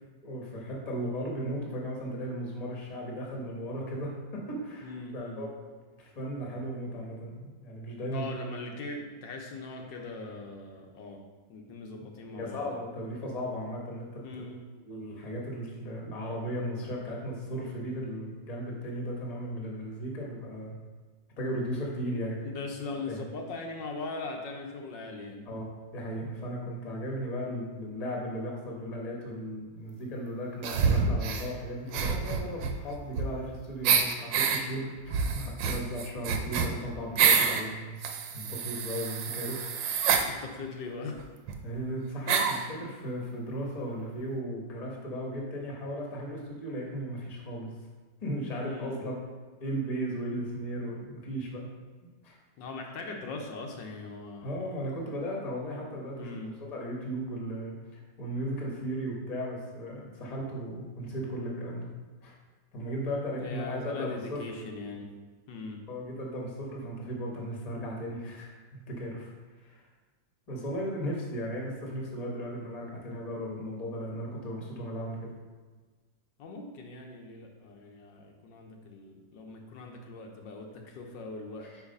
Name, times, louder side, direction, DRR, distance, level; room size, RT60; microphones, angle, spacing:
voice 1, 0.2-5.5 6.0-8.3 12.3-14.2 14.8-20.8 21.4-22.5 23.1-23.2 25.5-38.0 38.3-40.0 41.6-47.7 48.2-49.2 49.6-51.7 52.2-52.4 54.4-56.3 56.6-61.9 62.2-62.3 62.7-64.4 65.9-69.3 69.6-69.8 70.5-75.3, equal, 25° left, -2 dB, 1.0 m, -36 dB
voice 2, 4.8-5.5 8.1-11.2 11.5-12.8 14.2-14.6 22.4-25.4 40.3-41.3 48.6-49.0 52.6-54.8 56.2-56.5 63.3-65.1 65.5-65.8 76.4-81.8, left 3 dB, 75° left, 2 dB, 1.4 m, -40 dB
sound 1, 30.6-31.5 31.9-33.5 33.8-34.6 35.1-37.6 38.0-40.3 41.2-41.3 41.5-41.6 42.3-42.7, right 6 dB, 80° right, 1.3 m, -27 dB
4.8 x 4.6 x 5.3 m, 1.4 s
omnidirectional pair, 2.0 m